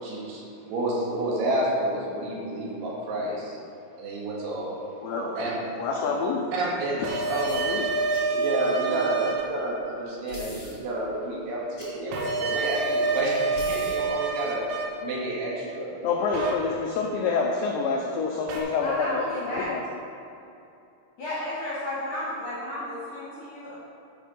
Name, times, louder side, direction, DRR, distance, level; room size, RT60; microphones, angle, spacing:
voice 1, 0.0-3.6 4.0-4.8 5.1-5.6 5.9-6.0 6.5-7.8 8.3-14.7 15.0-16.0, right 1 dB, 70° right, -5 dB, 3.9 m, -30 dB
voice 2, 5.8-6.5 7.3-7.9 16.0-19.8, left 5 dB, 85° left, 0 dB, 2.5 m, -27 dB
sound 1, 7.0-9.4 12.1-14.8 16.3-16.5 18.5-18.6, right 4 dB, 90° right, 4.2 m, -27 dB
sound 2, 7.5-7.7 8.1-8.3 8.6-8.7 10.3-10.8 11.8-11.9 13.5-14.0, left 3 dB, 35° left, 1.7 m, -41 dB
voice 3, 18.8-19.7 21.2-23.8, left 1 dB, 60° left, -8 dB, 2.0 m, -33 dB
12.5 x 5.1 x 5.3 m, 2.8 s
omnidirectional pair, 6.0 m